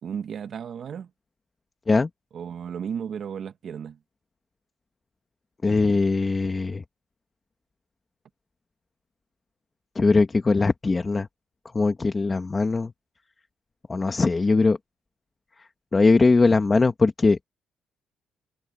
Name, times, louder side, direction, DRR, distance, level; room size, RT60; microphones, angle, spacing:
voice 1, 0.0-1.1 2.3-4.0, right 7 dB, 60° right, 1.6 m, -34 dB
voice 2, 5.6-6.8 10.0-11.3 11.7-12.9 13.9-14.8 15.6-17.4, left 3 dB, 25° left, 2.0 m, -21 dB
cardioid pair, 90°, 0 cm